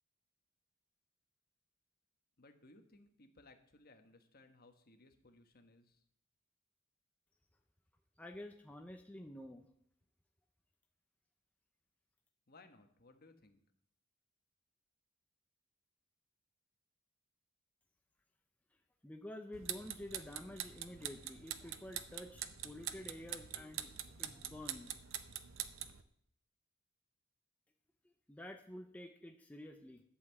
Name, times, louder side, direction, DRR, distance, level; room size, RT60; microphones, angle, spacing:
voice 1, 2.4-6.0 12.5-13.6, left 2 dB, 50° left, 6 dB, 1.2 m, -62 dB
voice 2, 8.2-9.6 19.0-24.9 28.3-30.0, left 1 dB, 5° left, 4 dB, 0.6 m, -50 dB
sound 1, 19.5-26.0, right 10 dB, 70° right, 0.7 m, -45 dB
11.0 x 5.6 x 8.0 m, 0.68 s
head